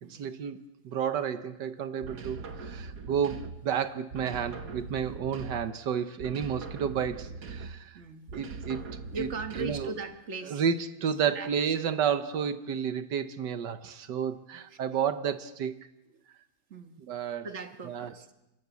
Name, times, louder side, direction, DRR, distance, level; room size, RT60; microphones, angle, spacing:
voice 1, 0.1-8.0 8.3-8.8 9.2-9.3 9.6-9.9 10.4-15.7 17.0-17.5 17.8-18.1, right 7 dB, 90° right, 10 dB, 1.7 m, -31 dB
sound 1, 2.0-3.7 4.1-5.9 6.2-7.9 8.3-10.0, right 4 dB, 70° right, 2.0 m, -41 dB
voice 2, 7.9-8.3 9.1-10.6 11.3-11.7 14.7-14.8 16.7-17.0 17.4-18.3, right 4 dB, 45° right, 6 dB, 1.9 m, -39 dB
28.5 x 19.0 x 8.4 m, 0.93 s
omnidirectional pair, 1.8 m